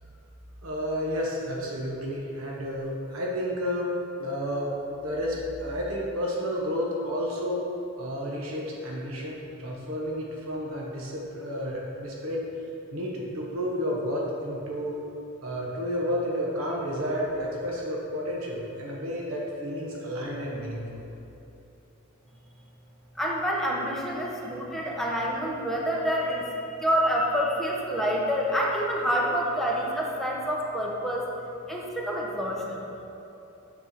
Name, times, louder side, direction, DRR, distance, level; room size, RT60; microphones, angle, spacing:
voice 1, 0.6-3.9 4.2-7.6 8.0-12.4 12.9-15.0 15.4-21.0, equal, 90° right, -3 dB, 1.1 m, -31 dB
voice 2, 23.1-31.3 31.7-32.8, equal, ahead, -3 dB, 0.9 m, -27 dB
6.9 x 4.5 x 5.9 m, 3.0 s
head